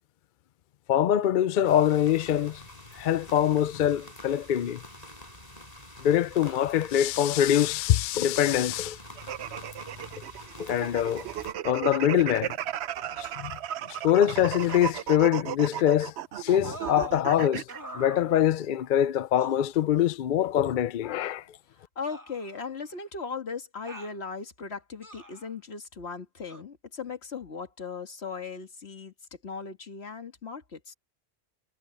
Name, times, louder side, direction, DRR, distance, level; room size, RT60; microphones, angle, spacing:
voice 1, 0.9-2.6 3.0-4.8 6.0-9.0 10.6-11.3 11.6-12.5 13.2-13.5 14.0-17.6 17.9-21.4, left 10 dB, 60° left, 0.6 m, -24 dB
sound 1, 1.6-11.5, left 1 dB, 40° left, 5.7 m, -47 dB
sound 2, 9.2-17.8, right 11 dB, 90° right, 0.9 m, -35 dB
sound 3, 16.6-17.2 17.7-18.7 19.4-19.6 20.7-20.8 22.1-23.0 23.9-24.2 25.0-25.5 26.5-26.6, right 1 dB, 20° right, 2.1 m, -43 dB
voice 2, 22.0-29.1 29.4-30.9, left 5 dB, 80° left, 2.1 m, -38 dB
omnidirectional pair, 1.1 m